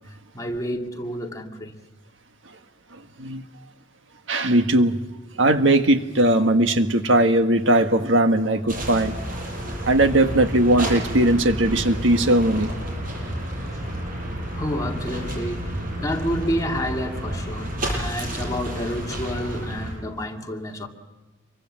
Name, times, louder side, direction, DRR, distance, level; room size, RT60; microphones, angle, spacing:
voice 1, 0.3-1.8 14.5-20.9, equal, 20° left, 2.4 m, -29 dB
voice 2, 2.9-3.4 4.3-5.1 5.4-9.1 9.8-12.7, right 1 dB, 70° right, 1.6 m, -19 dB
sound 1, 8.7-19.9, right 1 dB, 45° right, 7.7 m, -30 dB
27.0 x 23.5 x 7.6 m
head